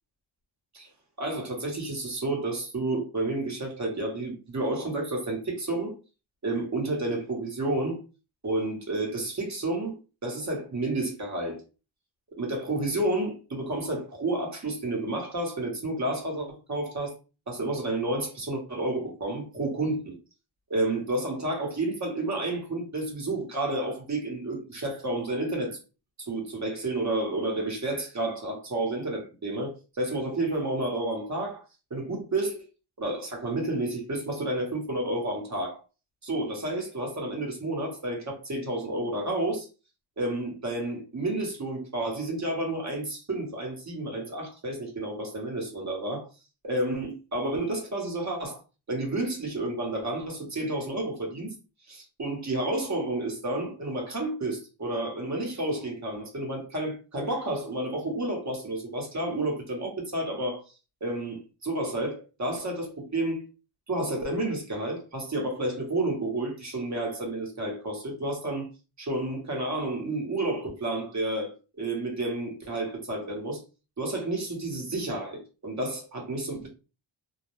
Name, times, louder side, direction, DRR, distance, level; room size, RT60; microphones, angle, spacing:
voice 1, 1.2-5.9 6.4-8.0 8.4-10.0 10.2-11.6 12.4-17.1 17.5-20.1 20.7-25.8 26.2-31.6 31.9-32.6 33.0-35.8 36.2-39.7 40.2-46.3 46.6-48.6 48.9-51.5 51.9-60.6 61.0-63.4 63.9-68.7 69.0-73.6 74.0-76.7, right 2 dB, 35° right, 0.9 m, -30 dB
2.3 x 2.1 x 3.0 m
cardioid pair, 100°, 49 cm